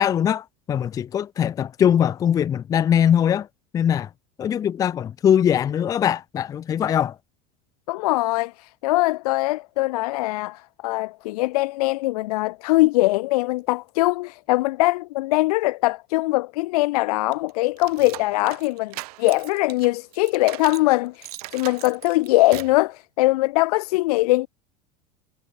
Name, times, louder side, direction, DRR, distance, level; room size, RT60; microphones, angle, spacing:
voice 1, 0.0-3.5 3.7-4.1 4.4-7.2, left 9 dB, 20° left, 0.6 m, -21 dB
voice 2, 7.9-24.5, left 20 dB, 85° left, 1.8 m, -22 dB
sound 1, 17.3-20.9 21.2-22.8, right 19 dB, 90° right, 6.6 m, -39 dB
cardioid pair, 175°, 19 cm